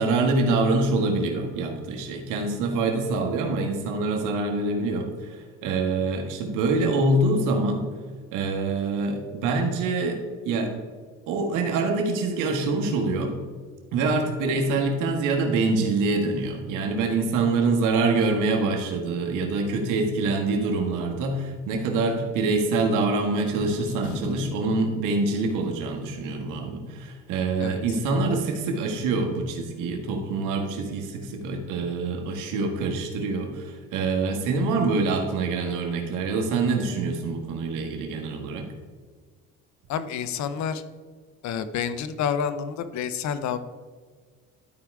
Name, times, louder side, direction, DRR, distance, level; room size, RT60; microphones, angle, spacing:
voice 1, 0.0-7.9 8.3-10.2 10.4-10.7 11.3-13.3 13.9-38.7, right 3 dB, 85° right, 3 dB, 1.6 m, -25 dB
voice 2, 23.6-24.5 27.6-27.8 39.9-40.8 41.4-43.6, left 7 dB, 65° left, 12 dB, 0.8 m, -29 dB
12.0 x 4.6 x 3.7 m, 1.5 s
cardioid pair, 90°, 31 cm